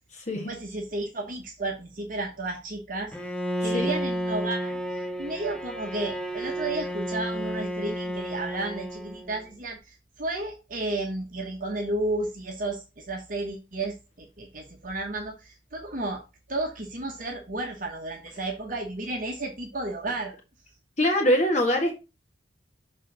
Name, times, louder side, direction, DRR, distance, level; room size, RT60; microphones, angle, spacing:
voice 1, 0.4-3.1 3.6-4.8 5.2-16.2 16.5-20.3, right 2 dB, 45° right, 1.1 m, -32 dB
Bowed string instrument, 3.1-9.4, equal, 5° left, 0.7 m, -32 dB
voice 2, 21.0-21.9, equal, 35° left, 1.7 m, -23 dB
6.6 x 3.7 x 6.0 m
head